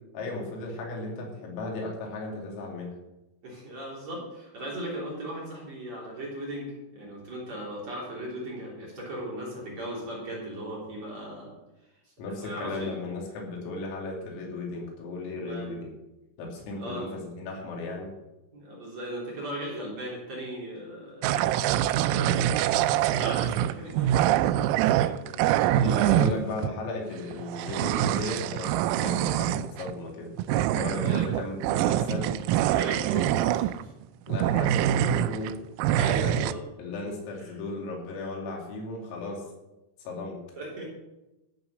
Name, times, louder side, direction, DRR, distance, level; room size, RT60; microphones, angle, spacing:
voice 1, 0.1-2.9 12.2-15.9 16.4-18.1 26.0-30.3 30.7-32.4 34.3-35.6 36.2-36.5 36.8-39.4 40.0-40.4, left 2 dB, 80° left, 0 dB, 5.4 m, -35 dB
voice 2, 3.4-11.5 12.1-13.0 15.3-15.7 16.8-17.1 18.5-21.3 22.1-26.6 30.9-31.3 32.7-33.9 34.7-34.9 35.9-36.6 37.4-37.5 40.6-40.9, right 1 dB, 35° right, -4 dB, 4.0 m, -38 dB
sound 1, 21.2-26.7 27.3-29.9 30.4-34.0 34.3-35.5 35.8-36.5, right 12 dB, 90° right, 3.3 m, -25 dB
14.5 x 8.1 x 6.5 m, 0.99 s
omnidirectional pair, 6.0 m